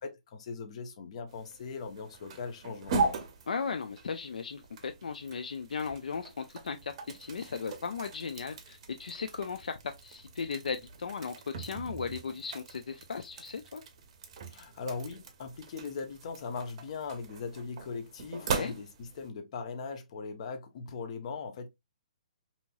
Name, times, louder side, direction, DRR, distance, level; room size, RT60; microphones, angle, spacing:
voice 1, 0.0-3.3 14.5-21.7, left 5 dB, 50° left, 0.7 m, -40 dB
sound 1, 1.3-19.3, right 4 dB, 45° right, 0.6 m, -40 dB
voice 2, 3.5-13.8 18.5-18.7, left 5 dB, 75° left, 0.3 m, -37 dB
2.9 x 2.7 x 2.2 m
hypercardioid pair, 140°, 4 cm